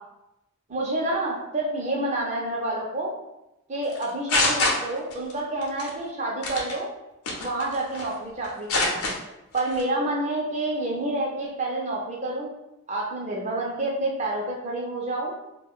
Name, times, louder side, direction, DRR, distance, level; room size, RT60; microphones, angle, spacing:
voice 1, 0.7-3.1 3.7-6.9 7.4-9.0 9.5-12.5 12.9-15.3, right 2 dB, 30° right, -2 dB, 0.5 m, -28 dB
sound 1, 3.9-5.3 5.6-5.9 6.4-6.7 7.3-8.1 8.4-9.1 9.6-9.8, left 2 dB, 90° left, 0.7 m, -25 dB
2.5 x 2.2 x 3.6 m, 0.91 s
head